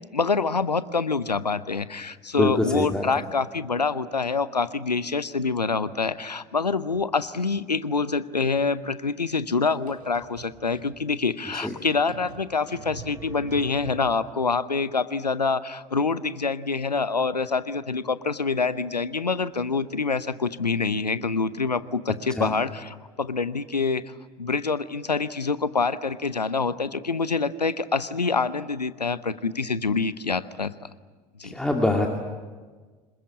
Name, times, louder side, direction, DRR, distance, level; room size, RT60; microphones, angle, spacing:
voice 1, 0.1-30.7 31.4-31.5, left 4 dB, 85° left, 16 dB, 0.8 m, -26 dB
voice 2, 2.4-3.0 11.5-11.7 22.4-22.5 31.4-32.1, left 1 dB, 5° left, 1 dB, 2.3 m, -24 dB
sound 1, 9.5-10.9 11.4-11.5 11.9-14.3, right 2 dB, 75° right, 3.8 m, -43 dB
26.5 x 21.0 x 8.5 m, 1.4 s
figure-of-eight pair, 70°, 20 cm